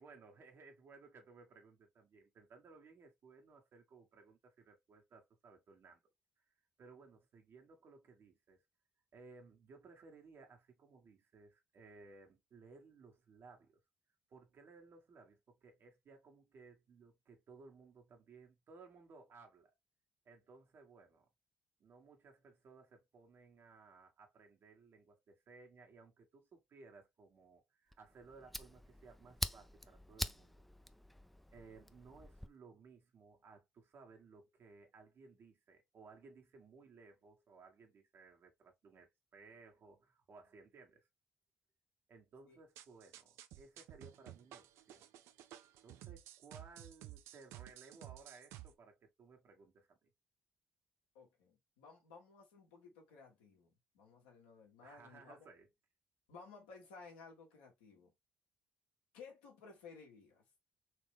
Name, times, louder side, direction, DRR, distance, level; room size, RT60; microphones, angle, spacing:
voice 1, 0.0-6.0 6.4-6.5 6.8-8.6 9.1-13.8 14.3-19.7 20.2-21.3 21.8-30.6 31.5-41.1 42.1-45.1 45.8-50.1 54.8-55.7, right 4 dB, 60° right, 1.6 m, -60 dB
Fire, 27.9-32.5, equal, ahead, 0.5 m, -45 dB
sound 1, 42.8-48.7, right 13 dB, 75° right, 0.4 m, -54 dB
voice 2, 51.1-55.5 56.3-58.1 59.1-60.4, left 4 dB, 85° left, 1.6 m, -57 dB
4.1 x 3.0 x 3.5 m
hypercardioid pair, 45°, 5 cm